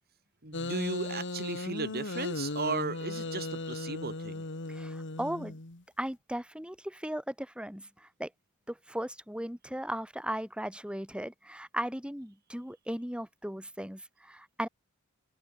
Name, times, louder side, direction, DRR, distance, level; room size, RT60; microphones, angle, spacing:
voice 1, 0.4-4.4, right 3 dB, 45° right, 6.0 m, -35 dB
sound 1, 0.5-5.8, left 2 dB, 55° left, 2.1 m, -37 dB
voice 2, 4.7-5.6 6.0-8.3 8.7-14.7, equal, 5° right, 6.2 m, -37 dB
open air
head